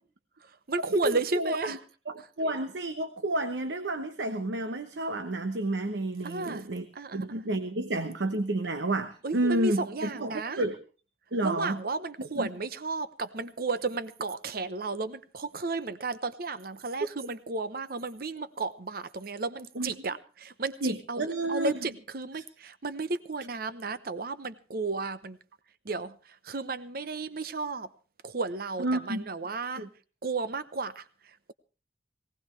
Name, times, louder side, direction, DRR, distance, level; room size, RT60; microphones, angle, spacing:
voice 1, 0.4-1.8 6.2-7.4 9.2-10.6 11.4-25.4 25.8-27.9 28.2-29.9 30.2-31.5, right 3 dB, 55° right, 14 dB, 0.8 m, -33 dB
voice 2, 0.9-1.8 2.1-6.9 7.1-10.8 11.3-11.8 12.4-12.5 19.8-19.9 20.8-21.7 28.8-29.2 29.8-29.9, right 2 dB, 85° right, 9 dB, 0.9 m, -30 dB
19.0 x 17.5 x 3.3 m, 0.35 s
head